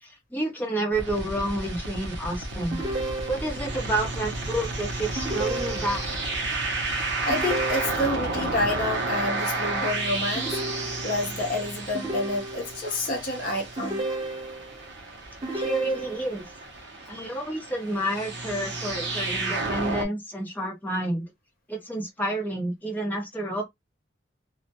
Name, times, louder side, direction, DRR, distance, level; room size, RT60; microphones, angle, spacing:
voice 1, 0.0-2.8 3.3-6.0 15.5-16.4 17.1-21.2 21.7-23.6, right 1 dB, 10° left, 0.7 m, -29 dB
sound 1, 0.9-20.1, right 2 dB, 60° right, 0.6 m, -32 dB
sound 2, 2.7-3.7 5.2-6.2 7.3-8.3 10.4-11.4 11.9-12.9 13.8-14.8 15.4-16.4, right 2 dB, 25° right, 1.1 m, -33 dB
voice 2, 7.2-10.5 11.0-14.0, left 1 dB, 45° left, 0.6 m, -28 dB
2.2 x 2.1 x 2.7 m
head